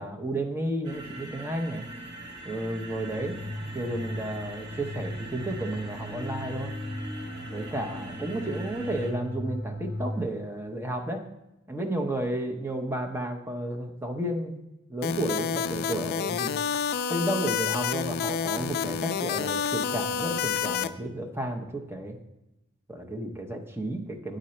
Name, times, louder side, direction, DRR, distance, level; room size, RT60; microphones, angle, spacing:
voice 1, 0.0-1.8 2.4-6.8 7.4-11.2 11.7-14.6 14.9-16.6 17.1-22.2 22.9-24.4, right 1 dB, 10° right, 2 dB, 0.7 m, -32 dB
sound 1, 0.8-9.1, right 1 dB, 60° right, 1.2 m, -41 dB
sound 2, 2.9-10.3, equal, 15° left, 1.9 m, -38 dB
sound 3, 15.0-20.9, left 7 dB, 50° left, 0.3 m, -29 dB
8.8 x 3.8 x 4.3 m, 0.92 s
head